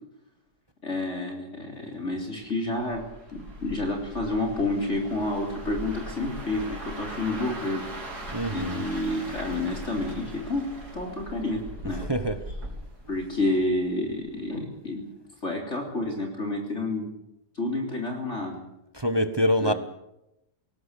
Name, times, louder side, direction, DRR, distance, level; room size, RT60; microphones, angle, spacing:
voice 1, 0.8-3.0 3.3-7.8 8.5-10.6 10.9-12.1 13.1-15.1 15.4-17.1 17.6-18.6 19.6-19.7, left 2 dB, 40° left, 3.8 m, -29 dB
sound 1, 2.7-13.8 14.2-14.5, right 1 dB, 65° right, 4.6 m, -40 dB
voice 2, 8.3-8.8 11.9-12.5 18.9-19.7, equal, 20° right, 0.9 m, -25 dB
21.0 x 18.5 x 8.2 m
omnidirectional pair, 1.8 m